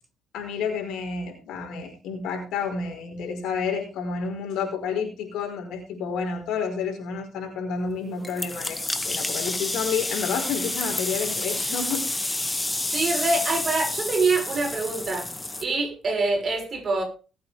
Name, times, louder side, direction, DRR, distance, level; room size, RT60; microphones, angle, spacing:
voice 1, 0.3-8.8 9.0-12.0, left 5 dB, 85° left, 2 dB, 5.0 m, -30 dB
sound 1, 8.2-15.6, left 2 dB, 15° left, 2.0 m, -29 dB
voice 2, 12.9-15.3 15.6-17.0, right 3 dB, 45° right, 2 dB, 6.4 m, -25 dB
19.5 x 8.4 x 3.5 m, 0.34 s
cardioid pair, 90°, 0 cm